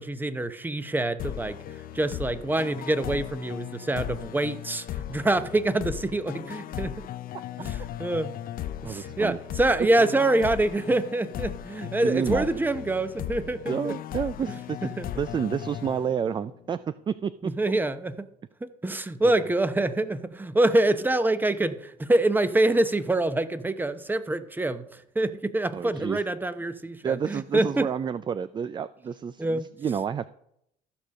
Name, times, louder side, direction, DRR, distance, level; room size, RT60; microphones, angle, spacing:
voice 1, 0.0-1.6 1.9-6.9 7.6-8.4 8.8-13.9 14.4-14.5 15.0-15.1 17.4-18.3 18.6-27.9 29.4-29.7, right 2 dB, 10° right, 11 dB, 0.8 m, -26 dB
sound 1, 1.2-16.6, left 11 dB, 60° left, 0.6 m, -37 dB
voice 2, 8.8-9.4 12.0-12.5 13.7-14.9 15.2-17.5 19.2-19.3 25.7-26.2 27.0-30.3, right 7 dB, 25° right, 14 dB, 0.4 m, -30 dB
14.5 x 5.0 x 6.4 m, 0.76 s
cardioid pair, 110°, 17 cm